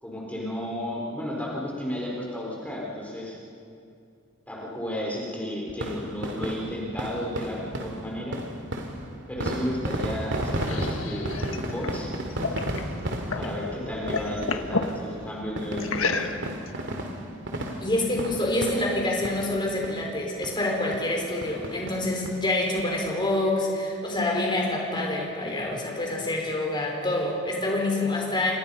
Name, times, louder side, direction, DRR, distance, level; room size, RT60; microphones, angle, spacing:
voice 1, 0.0-3.4 4.5-8.4 9.3-12.1 13.4-16.1, equal, 5° left, -3 dB, 4.0 m, -33 dB
sound 1, 5.7-19.6 19.8-20.0 20.4-20.5 20.9-21.1 21.4-22.4 22.8-22.9 23.1-23.2, right 1 dB, 60° right, 2.8 m, -33 dB
sound 2, 10.2-13.6 13.9-14.9 15.8-16.7, left 4 dB, 80° left, 1.5 m, -31 dB
voice 2, 17.8-28.5, left 1 dB, 25° left, -1 dB, 5.0 m, -27 dB
28.5 x 27.0 x 5.5 m, 2.5 s
head